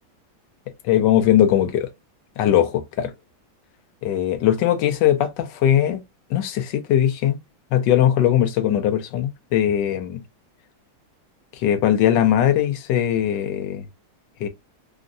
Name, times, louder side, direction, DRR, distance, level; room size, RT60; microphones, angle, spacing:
voice 1, 0.8-1.9 2.4-3.1 4.0-6.0 6.3-7.4 7.7-10.2 11.6-13.8 14.4-14.5, left 11 dB, 70° left, 1.2 m, -20 dB
3.6 x 2.1 x 2.5 m
omnidirectional pair, 2.1 m